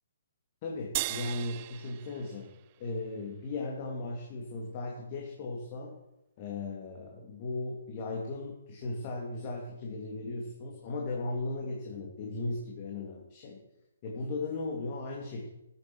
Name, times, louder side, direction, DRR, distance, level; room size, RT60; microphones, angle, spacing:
voice 1, 0.6-5.9 6.4-13.6 14.0-15.5, left 2 dB, 35° left, -1 dB, 2.7 m, -37 dB
sound 1, 0.9-3.5, right 17 dB, 35° right, 0.4 m, -38 dB
13.0 x 8.1 x 6.2 m, 0.90 s
hypercardioid pair, 145°, 0 cm